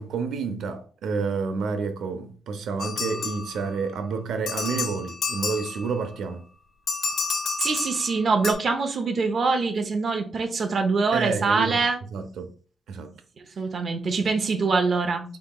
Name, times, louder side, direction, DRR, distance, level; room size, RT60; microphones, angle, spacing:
voice 1, 0.0-6.4 11.1-11.8 12.1-12.5 12.9-13.1, right 5 dB, 90° right, 0.6 m, -29 dB
sound 1, 2.8-3.9 4.5-6.1 6.9-8.5, left 4 dB, 50° left, 1.2 m, -30 dB
voice 2, 7.6-12.0 13.6-15.3, right 4 dB, 40° right, 0.7 m, -24 dB
5.6 x 3.9 x 2.3 m
wide cardioid pair, 175°, 0 cm